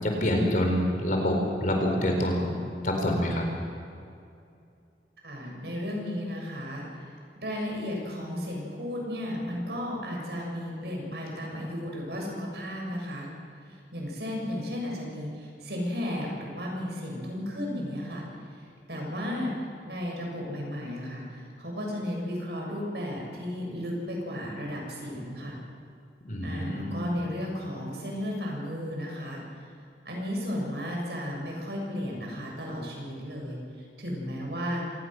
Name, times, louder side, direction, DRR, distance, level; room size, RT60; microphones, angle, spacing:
voice 1, 0.0-2.6 2.8-3.4 26.3-27.0, left 1 dB, 45° left, 2 dB, 4.5 m, -26 dB
voice 2, 5.2-7.2 7.4-13.3 13.7-18.3 18.9-19.5 19.8-25.6 26.4-29.4 30.1-34.8, equal, 70° right, -1 dB, 7.4 m, -34 dB
26.5 x 20.0 x 6.3 m, 2.5 s
head